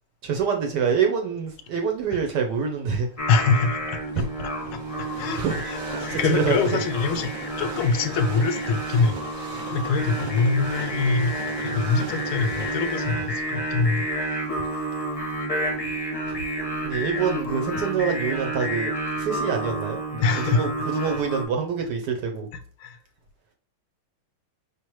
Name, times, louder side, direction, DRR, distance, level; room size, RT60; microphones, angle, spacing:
voice 1, 0.2-3.1 4.2-4.3 5.4-5.5 6.0-6.6 16.3-16.4 16.8-18.9 19.2-22.5, right 6 dB, 65° right, 3 dB, 1.1 m, -26 dB
Train, 1.7-17.6 18.2-18.3, right 2 dB, 45° right, 0.6 m, -41 dB
Singing, 3.2-21.4, right 1 dB, 40° left, 0.4 m, -30 dB
voice 2, 3.3-4.0 5.2-7.3 7.6-9.2 9.7-14.0 20.2-20.7 22.8-23.0, left 4 dB, 85° left, 9 dB, 1.4 m, -24 dB
5.0 x 3.2 x 3.0 m, 0.42 s
omnidirectional pair, 2.2 m